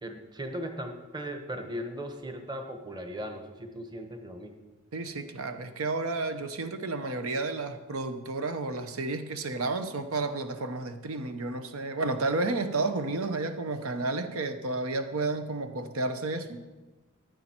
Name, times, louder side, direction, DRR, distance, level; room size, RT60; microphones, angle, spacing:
voice 1, 0.0-4.5, equal, 20° right, 5 dB, 1.1 m, -38 dB
voice 2, 4.9-16.6, right 3 dB, 85° right, 9 dB, 0.8 m, -31 dB
14.0 x 9.8 x 4.4 m, 1.2 s
head